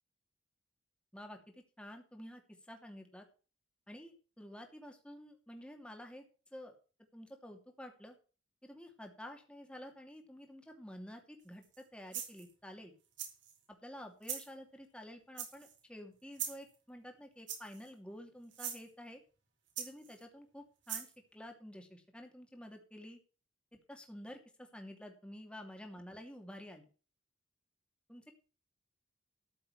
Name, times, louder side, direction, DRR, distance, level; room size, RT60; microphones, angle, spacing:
voice 1, 1.1-3.3 3.9-6.2 6.5-6.7 7.1-8.2 8.6-12.9 13.8-19.2 19.8-23.2 23.9-26.9 28.1-28.2, equal, 5° left, 3 dB, 2.7 m, -50 dB
sound 1, 11.6-11.8 12.1-12.5 13.2-13.6 14.2-14.5 15.4-15.8 16.3-16.7 17.5-17.9 18.5-18.8 19.8-20.2 20.9-21.1, right 9 dB, 70° right, 4.4 m, -41 dB
13.5 x 7.3 x 6.4 m, 0.37 s
head